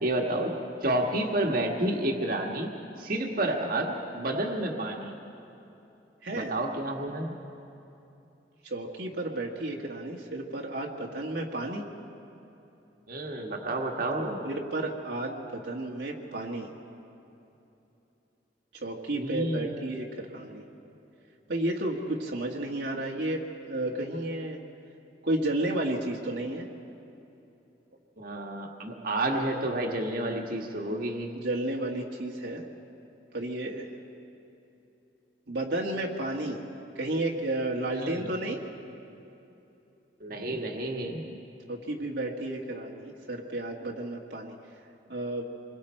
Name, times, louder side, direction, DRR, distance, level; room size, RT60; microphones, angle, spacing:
voice 1, 0.0-0.5 0.8-2.7 3.0-5.1 6.3-7.3 13.1-14.5 19.1-19.7 28.2-31.3 38.0-38.3 40.2-41.2, right 1 dB, 55° right, 1 dB, 1.7 m, -30 dB
voice 2, 6.2-6.5 8.6-11.9 14.4-16.7 18.8-20.6 21.5-24.6 25.2-26.7 31.4-32.6 33.3-33.9 35.5-36.6 36.9-38.6 41.7-44.5 45.1-45.5, right 1 dB, 70° right, -1 dB, 1.6 m, -32 dB
26.5 x 22.0 x 4.4 m, 2.9 s
head